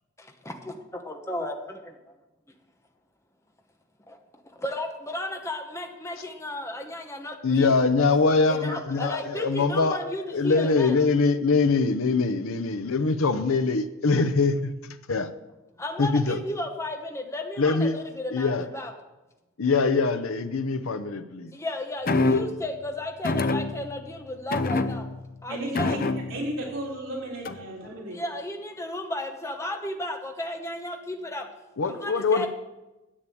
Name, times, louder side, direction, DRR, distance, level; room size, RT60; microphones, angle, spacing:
voice 1, 0.2-2.1 4.1-4.2 4.5-7.7 8.5-10.9 15.8-18.9 21.5-25.1 25.4-25.9 28.1-31.5 31.8-32.5, left 1 dB, 15° left, 3 dB, 1.0 m, -34 dB
voice 2, 7.4-10.0 10.3-14.6 15.1-15.3 16.0-16.4 17.6-17.9 18.3-18.7 19.6-21.5 22.3-22.4 31.8-32.5, left 4 dB, 80° left, 9 dB, 0.7 m, -23 dB
sound 1, 22.1-22.6 23.2-24.1 24.5-25.3 25.7-26.5 27.4-27.8, left 3 dB, 45° left, 0.6 m, -26 dB
voice 3, 25.5-26.0 26.3-28.2, right 1 dB, 65° right, -3 dB, 3.3 m, -34 dB
10.0 x 8.4 x 8.6 m, 1.0 s
head